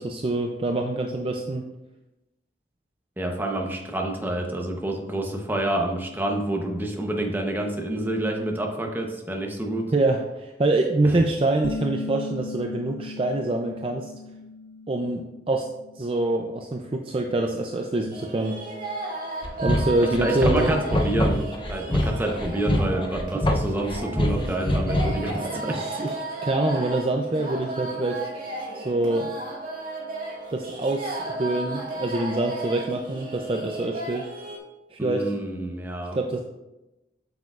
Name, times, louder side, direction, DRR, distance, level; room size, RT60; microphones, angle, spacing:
voice 1, 0.0-1.6 9.9-14.1 14.9-15.7 16.0-18.6 19.6-20.8 25.3-26.2 26.4-28.2 28.7-29.3 30.5-34.3 34.9-35.3 36.1-36.4, right 2 dB, 30° right, 2 dB, 0.4 m, -25 dB
voice 2, 3.2-9.9 11.0-11.2 20.2-25.8 35.0-36.2, right 1 dB, 10° right, 1 dB, 0.8 m, -28 dB
sound 1, 11.6-17.0, left 3 dB, 85° left, 0.4 m, -38 dB
sound 2, 18.1-34.6, right 2 dB, 50° right, 1.7 m, -34 dB
sound 3, 19.4-25.3, left 1 dB, 30° left, 0.6 m, -24 dB
8.0 x 6.6 x 2.4 m, 0.98 s
head